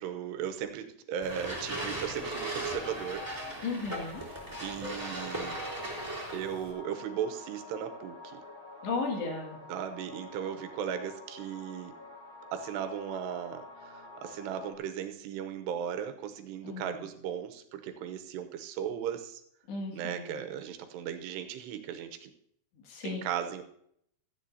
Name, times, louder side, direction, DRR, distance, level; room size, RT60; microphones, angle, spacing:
voice 1, 0.0-3.3 4.3-5.6 6.3-8.4 9.7-11.9 12.5-19.4 19.9-22.3 23.0-23.6, right 9 dB, 85° right, 7 dB, 3.0 m, -37 dB
sound 1, 1.2-6.7, right 1 dB, 5° right, 2.5 m, -37 dB
voice 2, 3.6-4.2 8.8-9.6 16.6-17.0 19.7-20.4 22.9-23.2, left 4 dB, 85° left, 0 dB, 4.4 m, -35 dB
sound 2, 4.1-14.7, left 2 dB, 30° left, 2.2 m, -48 dB
16.5 x 13.0 x 2.8 m, 0.71 s
omnidirectional pair, 4.8 m